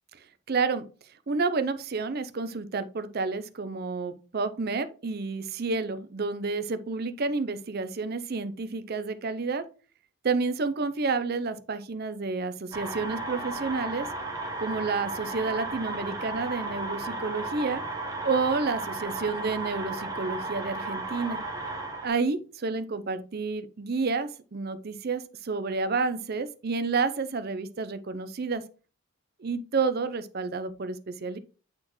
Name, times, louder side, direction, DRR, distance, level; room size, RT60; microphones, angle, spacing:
voice 1, 0.5-0.9 1.3-9.6 10.2-14.1 14.6-17.8 18.2-21.4 22.0-28.6 29.4-31.4, right 4 dB, 45° right, 12 dB, 0.5 m, -30 dB
sound 1, 12.7-22.1, right 2 dB, 15° right, 1.2 m, -34 dB
8.7 x 4.3 x 3.0 m, 0.37 s
head